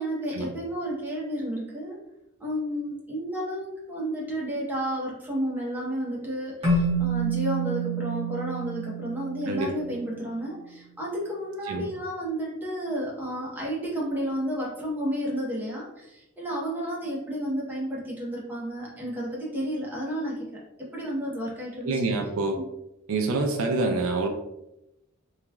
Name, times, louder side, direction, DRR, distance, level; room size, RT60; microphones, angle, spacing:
voice 1, 0.0-2.0 2.4-22.0, equal, 10° right, -5 dB, 0.8 m, -32 dB
Keyboard (musical), 6.6-9.9, right 3 dB, 30° right, 1.0 m, -28 dB
voice 2, 21.8-22.6 23.1-24.3, right 3 dB, 75° right, 3 dB, 0.4 m, -26 dB
2.9 x 2.3 x 2.2 m, 0.87 s
head